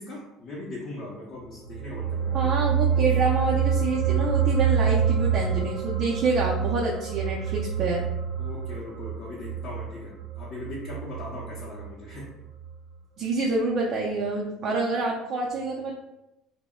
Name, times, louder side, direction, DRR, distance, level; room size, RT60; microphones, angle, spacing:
voice 1, 0.0-2.4 8.4-12.3, left 2 dB, 40° left, -6 dB, 0.6 m, -39 dB
sound 1, 1.5-12.3 12.6-12.7, right 7 dB, 65° right, 0.7 m, -27 dB
voice 2, 2.3-8.0 13.2-15.9, right 3 dB, 45° right, -3 dB, 0.4 m, -27 dB
2.0 x 2.0 x 3.5 m, 0.90 s
cardioid pair, 140°, 0 cm